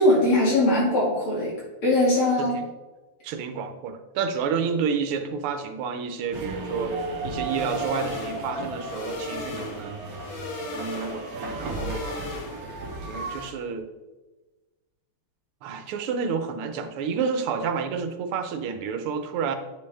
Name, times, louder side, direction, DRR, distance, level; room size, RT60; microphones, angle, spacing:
voice 1, 0.0-1.5 1.8-2.6, left 1 dB, 90° left, -5 dB, 3.3 m, -20 dB
voice 2, 3.2-10.1 10.7-12.1 13.0-13.9 15.6-19.6, right 6 dB, 85° right, 8 dB, 1.6 m, -30 dB
sound 1, 6.3-13.5, right 3 dB, 50° right, 1.3 m, -34 dB
sound 2, 7.4-12.8, left 3 dB, 55° left, 0.9 m, -37 dB
8.8 x 5.3 x 3.4 m, 1.2 s
omnidirectional pair, 2.3 m